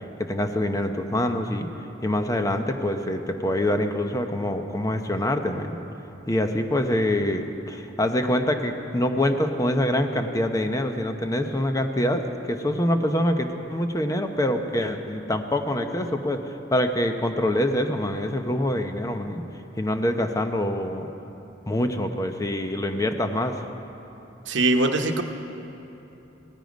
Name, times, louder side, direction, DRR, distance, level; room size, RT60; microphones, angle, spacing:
voice 1, 0.2-1.7 2.0-5.8 6.3-19.4 19.8-21.1 21.7-23.6, left 1 dB, 20° left, 6 dB, 0.8 m, -25 dB
voice 2, 24.5-25.2, right 2 dB, 75° right, 5 dB, 1.0 m, -21 dB
18.0 x 14.5 x 5.2 m, 3.0 s
head